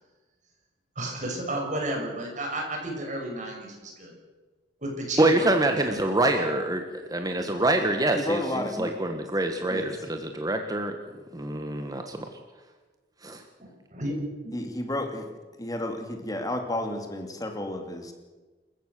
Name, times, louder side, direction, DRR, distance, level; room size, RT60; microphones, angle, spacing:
voice 1, 0.9-4.1 4.8-6.1 6.4-6.5 13.6-14.1, right 1 dB, 45° right, 1 dB, 6.4 m, -33 dB
voice 2, 5.2-6.8 7.1-8.4 8.8-11.0 11.3-12.3 13.2-13.4, right 2 dB, 20° right, 5 dB, 1.6 m, -25 dB
voice 3, 8.1-8.9 9.7-9.9 14.5-15.3 15.6-18.1, left 1 dB, 20° left, 4 dB, 2.7 m, -31 dB
28.0 x 15.0 x 6.8 m, 1.2 s
head